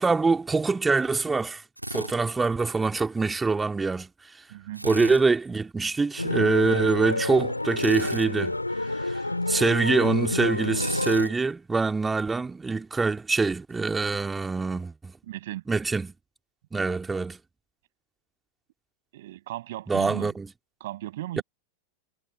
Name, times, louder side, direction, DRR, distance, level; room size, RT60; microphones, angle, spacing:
voice 1, 0.0-1.6 1.9-4.3 4.8-9.2 9.5-15.1 15.7-16.1 16.7-17.4 19.9-20.5, right 4 dB, 10° right, 2.9 m, -25 dB
Drill, 1.8-2.2 4.8-5.2 7.8-8.3 10.7-11.3, right 1 dB, 85° right, 2.1 m, -33 dB
voice 2, 4.5-4.9 15.3-15.6 19.1-20.3 20.8-21.4, right 15 dB, 55° right, 7.8 m, -36 dB
sound 1, 6.2-11.3, left 2 dB, 85° left, 4.9 m, -29 dB
figure-of-eight pair, 90°, 0 cm